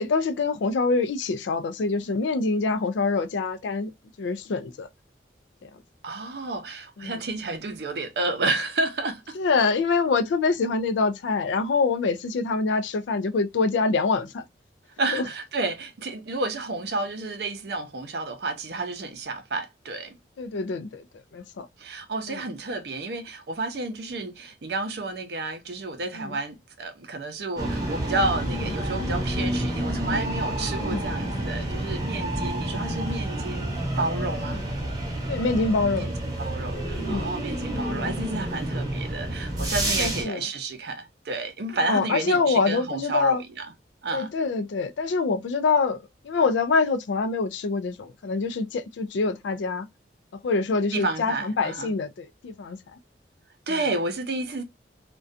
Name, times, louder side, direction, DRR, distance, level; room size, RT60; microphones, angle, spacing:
voice 1, 0.0-3.9 4.2-4.9 5.6-5.7 7.0-7.2 9.4-14.4 15.1-15.2 20.4-21.0 21.3-21.7 22.3-22.4 26.2-26.4 30.8-31.0 34.5-34.7 35.3-36.1 37.0-37.3 40.0-40.4 41.8-43.4 44.1-46.0 46.2-49.9 50.4-52.8, left 4 dB, 80° left, 0.4 m, -25 dB
voice 2, 6.0-9.4 15.0-20.2 21.8-34.6 35.8-43.7 44.0-44.3 50.9-51.9 53.7-54.6, right 2 dB, 60° right, 0.5 m, -31 dB
sound 1, 27.6-40.2, right 1 dB, 20° right, 0.8 m, -29 dB
2.4 x 2.2 x 2.5 m
head